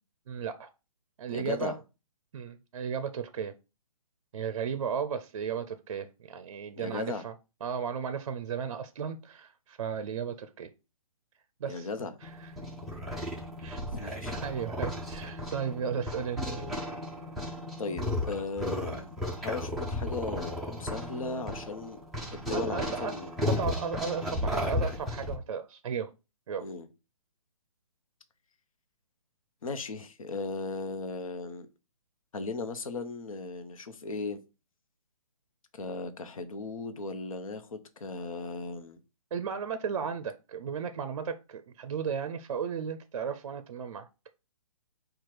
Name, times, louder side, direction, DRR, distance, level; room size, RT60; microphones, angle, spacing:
voice 1, 0.3-0.7 1.2-1.8 2.3-3.5 4.3-7.3 7.6-10.7 11.6-11.9 12.2-12.5 13.6-14.1 14.4-16.6 22.5-23.1 23.4-26.1 26.5-26.6 39.3-44.1, right 7 dB, 55° right, 0.5 m, -35 dB
voice 2, 1.3-1.8 6.8-7.2 11.6-12.1 13.9-14.4 17.8-19.1 19.4-22.0 22.3-23.4 26.6-26.9 29.6-31.7 32.3-34.4 35.7-39.0, left 3 dB, 65° left, 0.9 m, -37 dB
sound 1, 12.2-25.4, left 1 dB, ahead, 0.4 m, -34 dB
4.3 x 2.4 x 4.7 m
hypercardioid pair, 150°, 19 cm